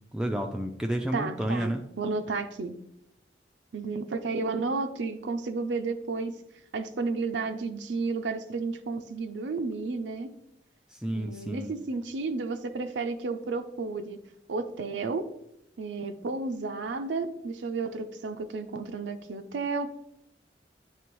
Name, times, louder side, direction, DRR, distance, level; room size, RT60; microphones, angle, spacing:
voice 1, 0.1-1.8 10.9-11.7, right 1 dB, 5° right, 3 dB, 0.3 m, -31 dB
voice 2, 1.1-1.7 2.0-2.7 3.7-6.4 6.7-10.3 11.1-14.2 14.5-15.3 15.8-19.9, right 4 dB, 85° right, 8 dB, 0.5 m, -32 dB
9.3 x 3.3 x 3.1 m, 0.79 s
head